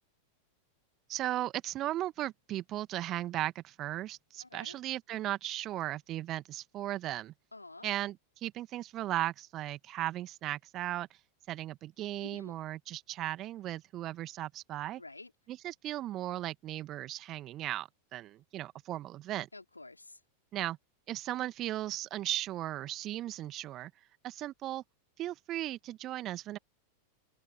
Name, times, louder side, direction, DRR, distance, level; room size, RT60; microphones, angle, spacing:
voice 1, 1.1-7.3 7.8-8.2 8.4-11.1 11.5-15.0 15.5-19.5 20.5-20.8 21.1-23.9 24.2-24.8 25.2-26.6, right 14 dB, 35° right, 1.8 m, -36 dB
voice 2, 4.4-4.8 7.5-7.9 12.2-12.5 15.0-15.3 19.5-20.2, left 2 dB, 80° left, 4.6 m, -49 dB
open air
figure-of-eight pair, 90°, 0 cm